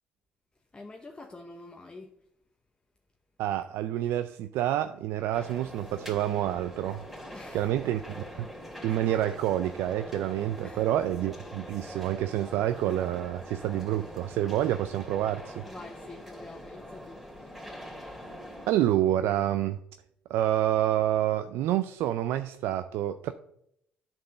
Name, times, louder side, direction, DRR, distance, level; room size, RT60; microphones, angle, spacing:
voice 1, 0.7-2.2 7.3-7.9 10.6-10.8 15.7-17.6, left 2 dB, 20° left, 0.9 m, -47 dB
voice 2, 3.4-7.0 7.5-8.5 8.8-15.7 18.7-19.8 20.3-23.3, right 12 dB, 75° right, 0.4 m, -28 dB
sound 1, 5.3-18.7, equal, 5° right, 2.5 m, -43 dB
8.2 x 4.5 x 6.9 m
supercardioid pair, 65°, 4 cm